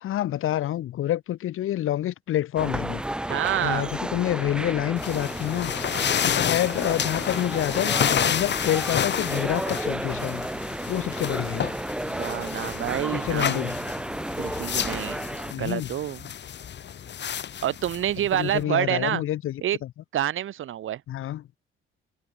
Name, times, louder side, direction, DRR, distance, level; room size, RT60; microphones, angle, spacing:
voice 1, 0.0-3.0 3.6-5.7 6.2-8.0 8.2-10.5 10.9-11.7 13.1-13.8 15.5-15.9 18.3-19.9 21.1-21.4, left 13 dB, 80° left, 1.5 m, -27 dB
sound 1, 2.6-15.5, right 1 dB, 5° right, 0.7 m, -32 dB
voice 2, 3.3-3.9 12.0-13.7 14.4-15.2 15.5-16.3 17.6-19.2 19.6-19.8 20.1-21.0, right 11 dB, 70° right, 2.0 m, -28 dB
sound 2, 5.0-18.6, left 9 dB, 55° left, 2.9 m, -30 dB
cardioid pair, 120°, 21 cm